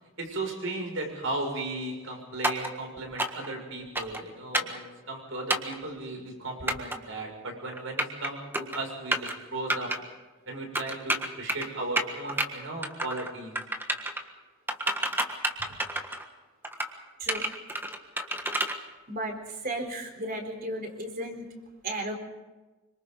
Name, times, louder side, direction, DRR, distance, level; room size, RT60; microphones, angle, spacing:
voice 1, 0.2-9.9 10.5-13.5 15.6-15.7, right 2 dB, 70° right, 1 dB, 6.7 m, -36 dB
sound 1, 2.4-2.7 3.2-3.5 3.9-4.2 4.5-4.8 5.5-5.8 6.7-7.0 7.7-8.3 8.5-8.8 9.1-9.3 9.7-10.0 10.7-11.7 12.0-12.5 12.8-13.3 13.5-14.2 14.7-16.2 16.6-16.9 17.3-18.7, right 1 dB, 10° right, 1.5 m, -29 dB
voice 2, 19.1-21.4 21.8-22.1, right 1 dB, 45° right, 3 dB, 4.1 m, -34 dB
27.0 x 25.0 x 4.0 m, 1.2 s
head